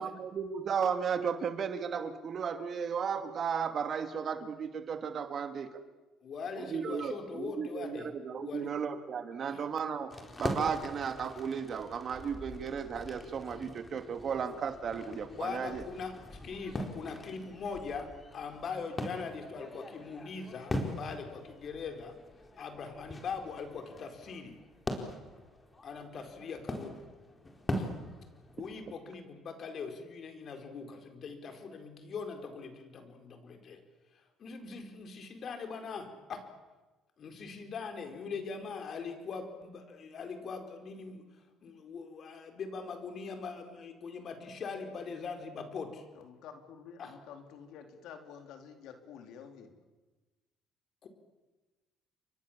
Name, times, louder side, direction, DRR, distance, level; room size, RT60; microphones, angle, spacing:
voice 1, 0.0-5.7 6.7-10.1 10.4-15.8, right 6 dB, 50° right, 9 dB, 2.4 m, -34 dB
voice 2, 6.2-8.8 9.4-9.7 15.3-22.2 22.6-24.6 25.8-27.1 27.7-27.9 28.5-33.8 34.1-36.4 37.2-41.2 41.6-46.0 47.0-47.2 51.0-51.1, left 5 dB, 50° left, 6 dB, 4.6 m, -41 dB
sound 1, 10.1-29.0, left 1 dB, 20° left, 4.4 m, -42 dB
voice 3, 46.1-49.7, left 7 dB, 75° left, 6 dB, 3.8 m, -50 dB
29.5 x 24.0 x 7.5 m, 1.2 s
supercardioid pair, 90°, 0 cm